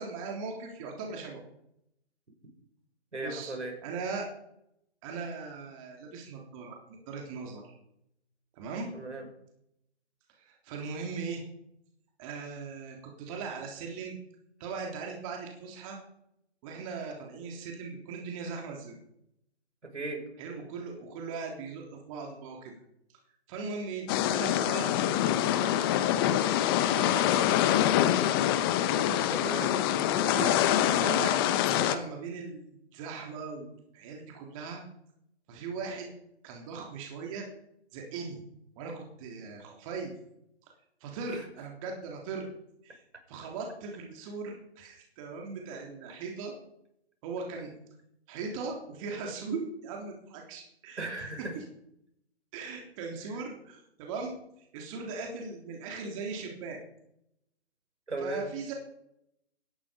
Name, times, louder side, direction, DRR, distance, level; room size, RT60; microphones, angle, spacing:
voice 1, 0.0-1.4 3.2-3.5 3.8-4.3 5.0-6.8 7.1-7.8 8.5-8.9 10.4-11.4 12.2-14.2 14.6-16.0 16.6-19.0 20.4-22.7 23.5-26.4 26.8-27.3 28.8-29.1 29.9-30.6 31.0-31.4 31.7-33.7 33.9-34.8 35.5-36.1 36.4-37.5 37.9-38.4 38.8-40.1 41.0-42.5 42.8-43.0 43.3-46.5 47.2-47.7 48.3-51.1 51.6-51.7 52.5-54.3 54.7-56.8 58.2-58.7, right 4 dB, 30° right, 1 dB, 3.5 m, -39 dB
voice 2, 3.1-3.7 8.9-9.2 19.9-20.2 29.3-29.7 41.3-41.4 51.0-51.5 58.1-58.5, right 2 dB, 80° right, 4 dB, 6.2 m, -36 dB
sound 1, 24.1-32.0, left 11 dB, 20° left, 0.9 m, -25 dB
17.5 x 13.5 x 5.2 m, 0.78 s
figure-of-eight pair, 140°, 34 cm